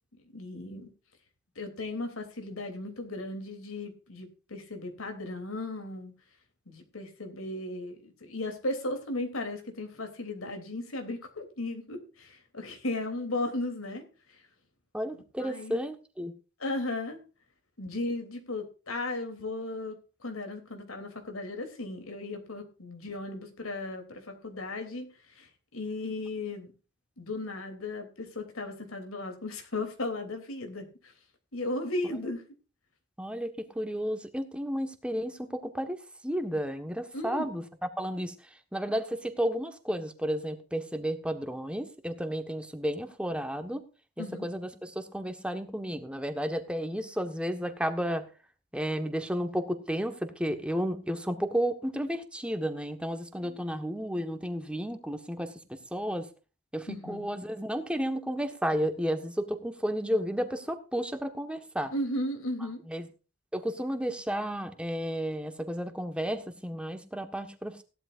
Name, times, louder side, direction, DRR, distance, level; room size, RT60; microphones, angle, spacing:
voice 1, 0.3-0.9 1.5-6.1 6.7-14.4 15.4-15.8 16.6-17.2 17.8-26.7 27.2-31.1 31.5-32.4 37.1-37.5 44.2-44.5 53.4-53.6 56.9-57.3 61.9-62.8, left 2 dB, 85° left, 5 dB, 3.2 m, -36 dB
voice 2, 14.9-16.3 33.2-36.0 36.2-37.6 38.0-38.3 38.7-43.8 44.4-48.2 48.7-56.3 56.7-61.9 62.9-63.1 63.5-67.8, equal, 5° right, 7 dB, 1.4 m, -32 dB
17.0 x 12.0 x 2.6 m, 0.33 s
head